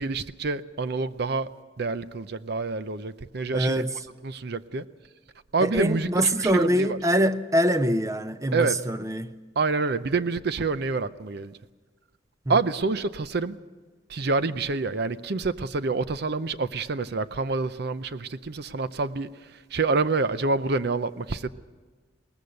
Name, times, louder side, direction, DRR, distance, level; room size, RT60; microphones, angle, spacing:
voice 1, 0.0-1.5 1.8-3.8 4.2-4.8 5.5-7.0 8.5-8.8 9.6-11.6 12.5-13.6 14.1-21.5, right 3 dB, 60° right, 0.6 m, -27 dB
voice 2, 3.5-3.9 5.6-9.3, equal, 20° right, 0.6 m, -24 dB
21.5 x 19.0 x 6.6 m
head